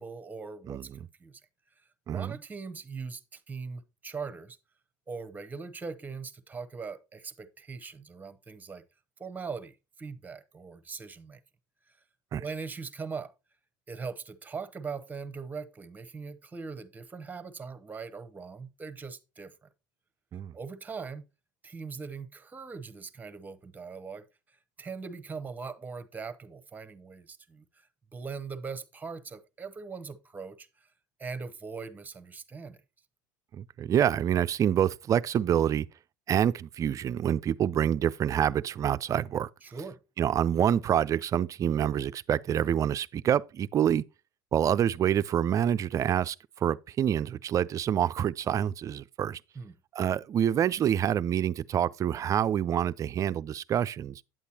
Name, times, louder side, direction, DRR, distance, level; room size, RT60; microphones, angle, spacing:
voice 1, 0.0-1.4 2.1-4.6 5.1-8.8 9.2-11.4 12.4-13.3 13.9-19.7 20.5-21.3 21.6-24.3 24.8-30.9 31.2-32.8 39.6-40.0 49.5-49.8, right 5 dB, 15° right, 0.8 m, -41 dB
voice 2, 0.7-1.0 2.1-2.4 12.3-12.4 20.3-20.5 33.5-35.9 36.3-39.5 40.2-44.0 44.5-46.4 46.6-49.4 49.9-54.2, right 9 dB, 35° right, 0.3 m, -27 dB
9.0 x 8.1 x 2.9 m
hypercardioid pair, 90°, 10 cm